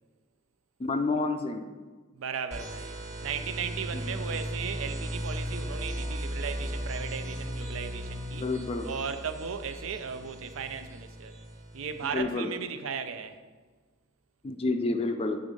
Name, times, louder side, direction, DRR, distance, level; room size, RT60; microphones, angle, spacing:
voice 1, 0.8-1.7 3.9-4.0 8.4-8.9 12.1-12.5 14.4-15.4, left 3 dB, 30° left, 0.4 m, -29 dB
voice 2, 2.1-3.0 3.2-8.5 8.8-11.4 11.7-13.4, right 6 dB, 80° right, 0.5 m, -36 dB
sound 1, 2.5-12.2, equal, 35° right, 1.3 m, -37 dB
8.0 x 3.7 x 5.1 m
head